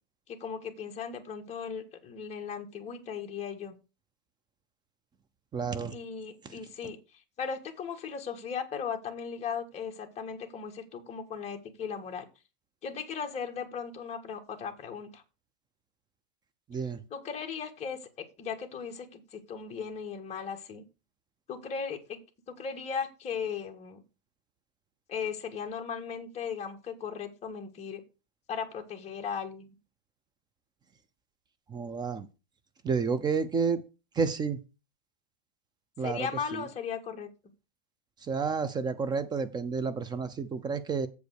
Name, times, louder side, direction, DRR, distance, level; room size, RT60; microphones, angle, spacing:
voice 1, 0.3-3.7 5.9-7.0 7.4-12.3 12.8-15.2 17.1-20.8 21.5-22.2 22.5-24.0 25.1-28.0 28.5-29.7 36.0-37.3, left 6 dB, 20° left, 3 dB, 1.7 m, -37 dB
voice 2, 5.5-5.9 6.4-6.6 16.7-17.0 31.7-32.3 32.8-33.8 34.2-34.6 36.0-36.7 38.2-41.1, right 5 dB, 15° right, 12 dB, 0.6 m, -30 dB
7.8 x 5.2 x 6.5 m, 0.30 s
supercardioid pair, 145°, 29 cm